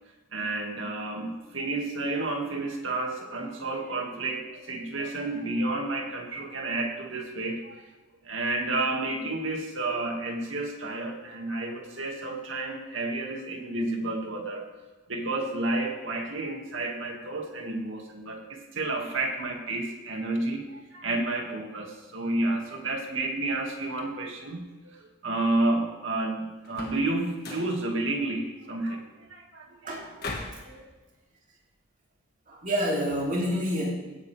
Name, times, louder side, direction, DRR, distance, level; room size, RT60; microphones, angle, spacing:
voice 1, 0.3-7.8 8.2-14.7 15.1-29.9 30.6-30.8, right 2 dB, 85° right, 1 dB, 2.2 m, -31 dB
sound 1, 26.6-27.1 27.4-27.8 30.2-30.7, left 3 dB, 55° left, 1.8 m, -37 dB
voice 2, 32.5-33.9, equal, 40° right, -3 dB, 3.1 m, -27 dB
17.0 x 9.4 x 3.5 m, 1.2 s
head